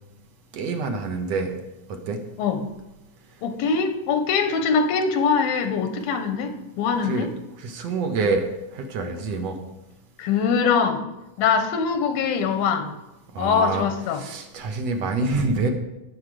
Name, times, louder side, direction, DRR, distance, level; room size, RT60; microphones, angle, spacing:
voice 1, 0.5-1.5 1.9-2.2 7.0-7.3 7.6-8.5 8.7-9.6 13.3-13.9 14.1-15.7, right 3 dB, 60° right, 5 dB, 2.0 m, -26 dB
voice 2, 3.4-7.3 10.2-11.0 11.4-12.9 13.4-14.2, left 5 dB, 90° left, 8 dB, 2.9 m, -23 dB
18.5 x 7.3 x 4.9 m, 0.96 s
omnidirectional pair, 4.1 m